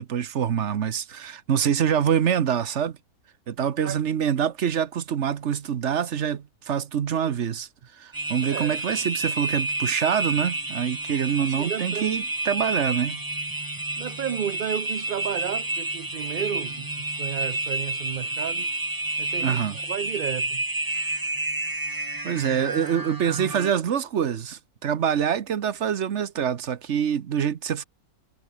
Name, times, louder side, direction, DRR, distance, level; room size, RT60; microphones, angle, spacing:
voice 1, 0.0-3.0 3.5-7.7 8.0-13.2 19.4-19.8 22.2-27.8, right 8 dB, 50° right, 1.1 m, -25 dB
sound 1, 8.1-23.7, right 2 dB, 10° right, 1.6 m, -30 dB
voice 2, 11.4-12.2 14.0-18.7 19.2-19.6 19.9-20.6, right 9 dB, 65° right, 0.5 m, -32 dB
omnidirectional pair, 1.8 m